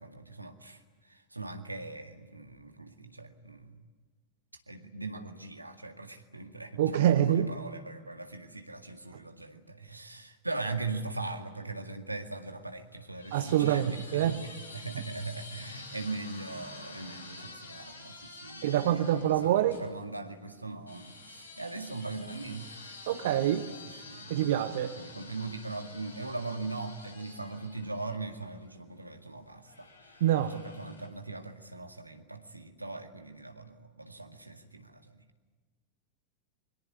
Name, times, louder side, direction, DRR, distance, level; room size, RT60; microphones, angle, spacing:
voice 1, 0.0-3.8 4.7-22.7 23.1-23.8 24.1-24.5 25.0-35.2, right 3 dB, 85° right, 5 dB, 2.0 m, -40 dB
voice 2, 6.8-7.5 13.3-14.4 18.6-19.8 23.1-23.7 24.3-24.9 30.2-30.5, right 11 dB, 55° right, 10 dB, 1.1 m, -26 dB
sound 1, 12.5-19.9 20.9-28.8 29.7-31.3, left 3 dB, 80° left, 4.6 m, -49 dB
25.5 x 22.5 x 9.9 m, 1.4 s
figure-of-eight pair, 90°, 0 cm